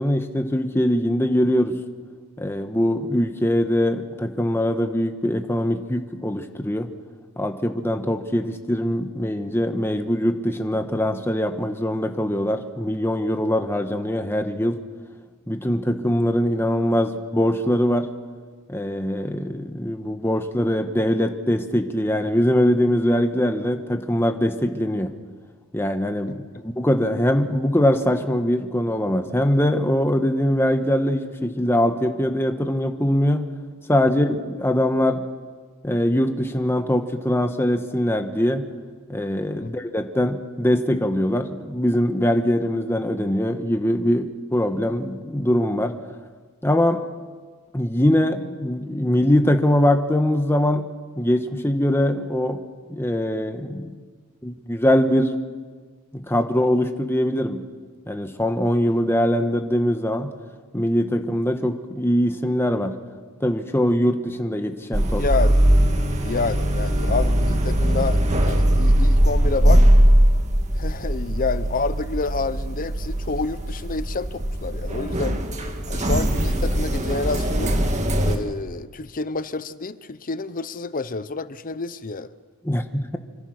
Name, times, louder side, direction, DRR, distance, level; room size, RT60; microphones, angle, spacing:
voice 1, 0.0-1.8 2.4-6.9 7.4-14.8 15.5-18.1 18.7-25.1 25.7-33.5 33.9-35.2 35.8-38.6 39.1-46.0 46.6-47.0 47.7-50.9 51.2-52.6 52.9-53.9 54.4-55.4 56.1-57.6 58.1-60.3 60.7-63.0 63.4-65.2 82.6-83.2, left 1 dB, 10° left, 6 dB, 1.2 m, -22 dB
sound 1, 64.9-78.4, right 1 dB, 35° right, 2.1 m, -20 dB
voice 2, 65.2-65.5 66.2-69.8 70.8-75.4 75.9-77.8 78.2-82.3, left 4 dB, 40° left, 15 dB, 0.7 m, -28 dB
26.0 x 25.5 x 6.5 m, 1.5 s
head